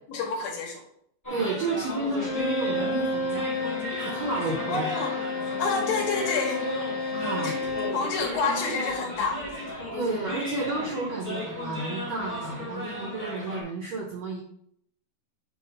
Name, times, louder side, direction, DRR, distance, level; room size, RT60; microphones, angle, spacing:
voice 1, 0.1-0.8 4.7-5.1 5.6-6.6 7.4-9.4, left 4 dB, 75° left, 0 dB, 2.8 m, -29 dB
sound 1, 1.2-13.6, left 1 dB, 15° left, 0.6 m, -35 dB
voice 2, 1.3-3.4 4.0-4.9 7.1-7.6 9.9-14.4, right 3 dB, 70° right, -2 dB, 1.6 m, -31 dB
Bowed string instrument, 2.2-8.1, left 2 dB, 60° left, 2.8 m, -31 dB
7.1 x 2.5 x 5.4 m, 0.68 s
omnidirectional pair, 4.3 m